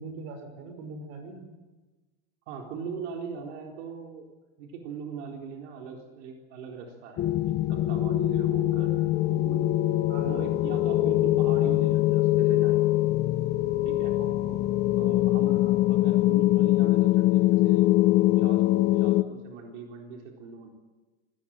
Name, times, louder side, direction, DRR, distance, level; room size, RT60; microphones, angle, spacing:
voice 1, 0.0-1.5 10.1-10.4 14.2-14.8 15.5-15.8, right 3 dB, 50° right, 7 dB, 6.2 m, -42 dB
voice 2, 2.5-4.3 4.6-9.7 10.2-12.8 13.8-14.1 15.0-15.6 15.9-17.9 18.3-20.7, right 5 dB, 85° right, 1 dB, 4.1 m, -40 dB
sound 1, 7.2-19.2, left 16 dB, 30° left, 0.8 m, -23 dB
27.0 x 19.5 x 8.8 m, 1.2 s
supercardioid pair, 175°, 35 cm